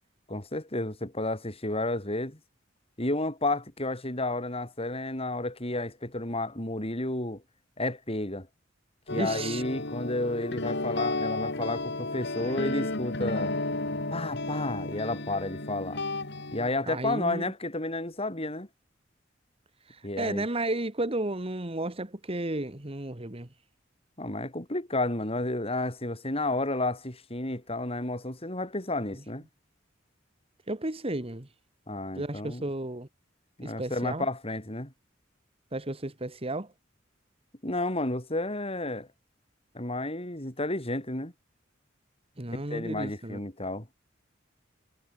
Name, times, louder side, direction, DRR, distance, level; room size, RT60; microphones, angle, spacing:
voice 1, 0.3-2.4 3.0-7.4 7.8-8.5 9.1-13.5 14.1-16.0 16.5-18.7 20.0-20.5 24.2-29.4 31.9-32.6 33.6-34.9 37.6-39.1 39.7-41.3 42.7-43.9, left 2 dB, 30° left, 6.4 m, -31 dB
sound 1, 9.1-16.7, left 2 dB, 60° left, 3.7 m, -33 dB
voice 2, 9.2-9.6 12.4-12.9 16.9-17.4 19.9-23.5 30.7-31.5 32.1-33.1 33.6-34.3 35.7-36.7 42.4-43.4, right 2 dB, 30° right, 2.0 m, -33 dB
head